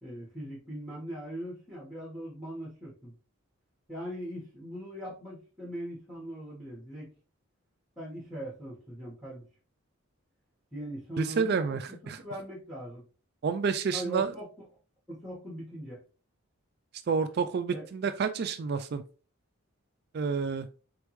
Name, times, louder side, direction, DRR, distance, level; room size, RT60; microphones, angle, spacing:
voice 1, 0.0-3.1 3.9-7.1 8.0-9.4 10.7-13.0 13.9-14.5 15.1-16.0 17.7-17.8, right 1 dB, ahead, -7 dB, 1.4 m, -40 dB
voice 2, 11.2-12.2 13.4-14.3 17.1-19.0 20.1-20.7, right 5 dB, 45° right, 10 dB, 0.3 m, -29 dB
4.1 x 3.5 x 3.0 m, 0.36 s
head